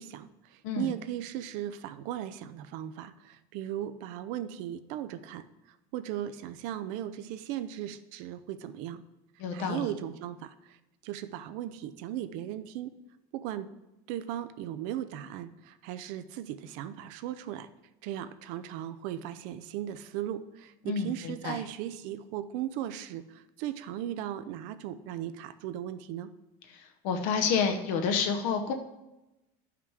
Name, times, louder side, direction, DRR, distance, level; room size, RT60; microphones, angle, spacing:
voice 1, 0.0-5.4 5.9-9.0 9.5-10.8 11.0-12.9 13.3-13.7 14.1-17.7 18.0-26.3, right 11 dB, 65° right, 12 dB, 0.5 m, -37 dB
voice 2, 9.4-9.9 20.9-21.6 26.8-28.7, left 6 dB, 65° left, 5 dB, 0.8 m, -29 dB
11.0 x 5.9 x 4.8 m, 0.97 s
cardioid pair, 170°, 15 cm